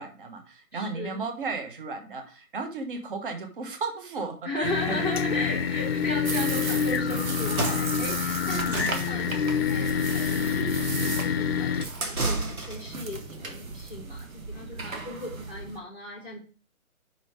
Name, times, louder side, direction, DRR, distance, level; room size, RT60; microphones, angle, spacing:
voice 1, 0.0-5.0 6.0-6.1 8.5-8.7, right 4 dB, 35° right, 5 dB, 1.3 m, -35 dB
voice 2, 0.7-1.2 4.4-16.4, left 1 dB, 5° right, -5 dB, 0.8 m, -36 dB
sound 1, 4.6-11.9, left 7 dB, 45° left, 0.7 m, -27 dB
sound 2, 6.2-15.8, right 3 dB, 70° right, 1.8 m, -36 dB
sound 3, 7.4-13.0, right 2 dB, 85° right, 2.4 m, -33 dB
5.6 x 5.6 x 4.8 m, 0.37 s
hypercardioid pair, 160°, 43 cm